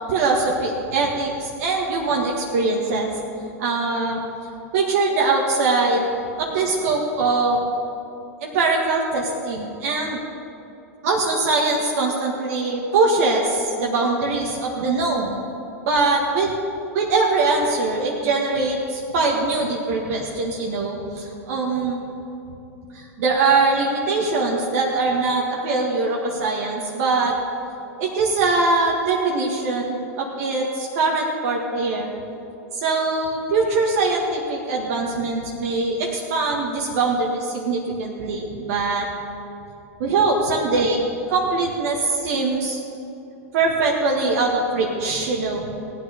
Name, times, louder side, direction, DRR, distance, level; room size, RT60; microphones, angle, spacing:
voice 1, 0.1-3.1 3.6-4.2 4.7-6.1 6.4-7.6 8.4-10.2 11.0-15.4 15.8-16.5 16.9-22.0 22.9-27.3 28.0-32.1 32.7-39.1 40.0-41.0 41.3-42.8 43.5-45.7, right 3 dB, 65° right, -2 dB, 1.7 m, -22 dB
17.0 x 9.2 x 5.1 m, 2.9 s
hypercardioid pair, 110°, 9 cm